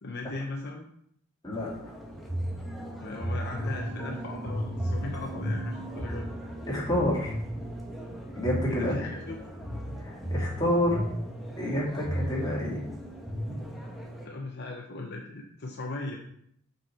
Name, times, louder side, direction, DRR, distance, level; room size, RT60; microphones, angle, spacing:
voice 1, 0.0-0.9 2.9-6.3 8.7-9.4 14.2-16.2, left 2 dB, 55° left, 1 dB, 0.8 m, -38 dB
sound 1, 1.5-14.3, equal, ahead, 1.0 m, -35 dB
voice 2, 6.7-7.3 8.3-9.1 10.0-11.0 11.6-12.8, left 1 dB, 20° left, -6 dB, 2.5 m, -28 dB
6.2 x 5.4 x 4.3 m, 0.69 s
head